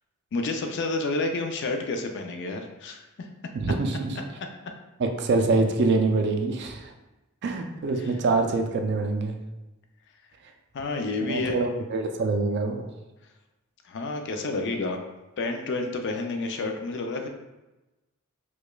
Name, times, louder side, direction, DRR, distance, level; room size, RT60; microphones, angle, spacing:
voice 1, 0.3-3.3 10.7-11.6 13.9-15.0 15.4-17.3, left 3 dB, 55° left, 4 dB, 0.4 m, -29 dB
voice 2, 3.5-4.2 5.0-6.9 7.4-9.4 11.2-12.9, right 3 dB, 50° right, 5 dB, 0.4 m, -25 dB
4.8 x 2.3 x 2.2 m, 1.0 s
head